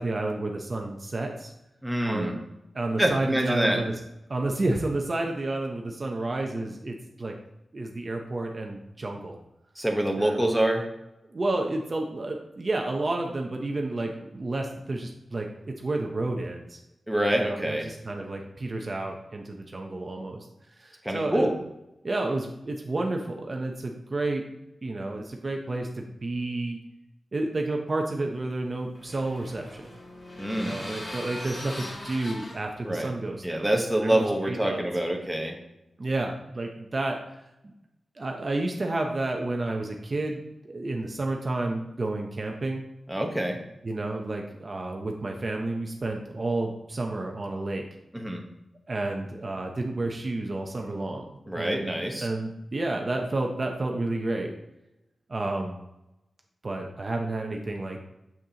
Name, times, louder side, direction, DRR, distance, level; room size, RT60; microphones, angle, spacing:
voice 1, 0.0-1.5 2.0-2.4 2.7-3.9 4.3-7.3 7.7-9.4 10.2-10.4 11.3-16.8 17.3-20.5 20.8-21.5 22.0-24.5 24.8-26.8 27.3-29.8 30.5-33.7 34.0-34.8 36.0-37.7 38.2-42.8 43.8-47.8 48.9-51.9 52.2-54.5 55.3-55.8 56.6-58.0, right 2 dB, 35° right, 2 dB, 0.7 m, -31 dB
voice 2, 1.8-2.3 3.0-3.8 9.8-10.8 17.1-17.9 21.0-21.5 30.4-30.8 32.9-33.1 33.4-35.5 43.1-43.6 48.1-48.4 51.5-52.3, right 1 dB, 5° right, 1 dB, 1.0 m, -26 dB
sound 1, 28.4-33.9, left 1 dB, 45° left, 2.1 m, -41 dB
7.2 x 6.4 x 2.9 m, 0.90 s
wide cardioid pair, 120°, 0 cm